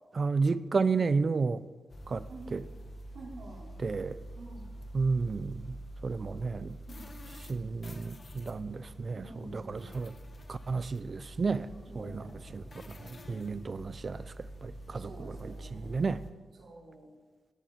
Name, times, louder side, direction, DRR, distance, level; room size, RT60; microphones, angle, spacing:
voice 1, 0.1-1.6 2.1-2.6 3.8-4.2 4.9-5.7 6.0-6.8 7.5-10.1 10.5-11.7 11.9-14.3 14.6-16.2, right 4 dB, 50° right, 15 dB, 0.8 m, -32 dB
sound 1, 1.9-16.3, right 1 dB, 55° left, 2.1 m, -46 dB
voice 2, 3.1-3.7 4.4-4.7 6.9-7.0 9.2-9.9 11.9-12.3 12.9-13.8 15.0-16.1 16.6-17.1, right 2 dB, 80° right, -4 dB, 5.3 m, -49 dB
18.0 x 17.5 x 4.6 m, 1.3 s
cardioid pair, 65°, 0 cm